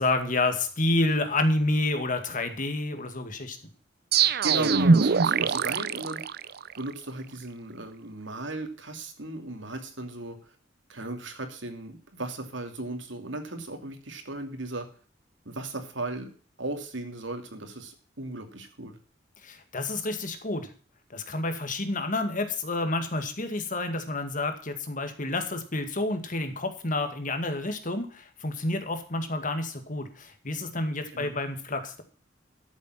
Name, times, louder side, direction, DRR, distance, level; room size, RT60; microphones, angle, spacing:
voice 1, 0.0-3.6 19.4-20.7 21.1-32.0, left 2 dB, 45° left, 8 dB, 2.1 m, -29 dB
sound 1, 4.1-6.9, right 5 dB, 55° right, 0.6 m, -23 dB
voice 2, 4.4-6.2 6.8-10.4 10.9-14.9 15.4-16.3 16.6-19.0 31.1-31.4, right 2 dB, 75° right, 6 dB, 2.7 m, -36 dB
13.5 x 7.4 x 6.0 m, 0.41 s
head